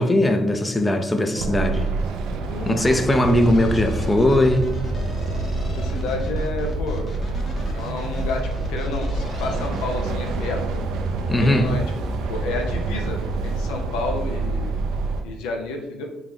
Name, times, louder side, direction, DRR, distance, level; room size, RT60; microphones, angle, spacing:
voice 1, 0.0-1.9 2.7-4.7 11.3-11.7, left 1 dB, 20° left, 6 dB, 0.4 m, -19 dB
sound 1, 1.3-15.2, right 3 dB, 80° right, 0.5 m, -27 dB
voice 2, 2.5-3.1 5.8-7.1 7.7-10.8 11.4-11.8 12.3-14.7 15.2-16.1, left 2 dB, 90° left, 3 dB, 0.5 m, -30 dB
sound 2, 3.1-10.5, equal, 45° left, 1.0 m, -33 dB
3.6 x 2.9 x 3.3 m, 0.93 s
supercardioid pair, 85°, 0 cm